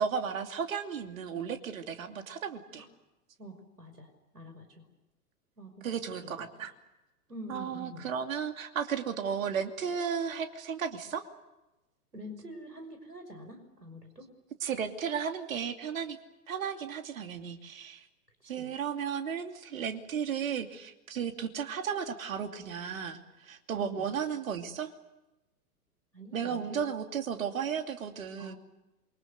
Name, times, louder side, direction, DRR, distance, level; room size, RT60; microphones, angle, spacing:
voice 1, 0.0-2.8 5.8-6.7 7.5-11.2 14.6-16.2 16.5-18.0 18.5-23.2 23.5-24.9 26.3-28.5, right 7 dB, 60° right, 6 dB, 2.8 m, -34 dB
voice 2, 3.4-4.8 5.6-6.5 7.3-8.1 12.1-14.3 18.4-18.7 23.8-24.1 26.1-26.9 28.4-28.6, equal, 85° right, 7 dB, 5.4 m, -46 dB
28.0 x 24.5 x 6.8 m, 0.97 s
figure-of-eight pair, 105°, 46 cm